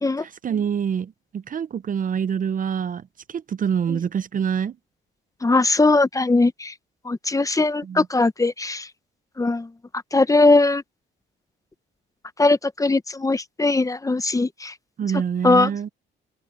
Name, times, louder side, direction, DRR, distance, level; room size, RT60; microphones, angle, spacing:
voice 1, 0.2-4.8 7.8-8.1 15.0-15.9, right 7 dB, 45° right, 0.6 m, -26 dB
voice 2, 5.4-6.7 7.0-8.9 9.4-9.7 10.1-10.8 12.4-14.7 15.4-15.7, left 3 dB, 15° left, 0.9 m, -20 dB
cardioid pair, 90°, 20 cm